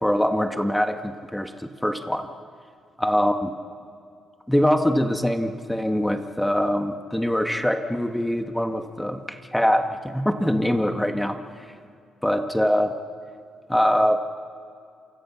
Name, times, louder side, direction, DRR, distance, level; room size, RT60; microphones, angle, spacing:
voice 1, 0.0-2.3 3.0-3.5 4.5-11.4 12.2-13.0 13.7-14.2, equal, 5° left, 6 dB, 1.6 m, -23 dB
28.0 x 25.5 x 6.1 m, 2.3 s
cardioid pair, 90°, 0 cm